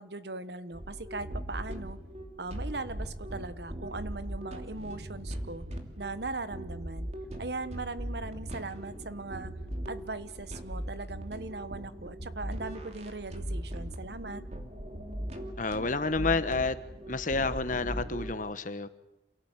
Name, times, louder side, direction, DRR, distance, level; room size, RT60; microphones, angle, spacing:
voice 1, 0.0-2.0 2.4-5.6 6.0-7.1 7.4-9.5 9.9-14.4, right 3 dB, 65° right, 13 dB, 1.3 m, -39 dB
sound 1, 0.7-18.3, equal, 40° right, 2.8 m, -39 dB
voice 2, 15.6-16.8 17.1-18.9, left 3 dB, 45° left, 11 dB, 1.3 m, -29 dB
28.5 x 17.5 x 9.1 m, 0.94 s
head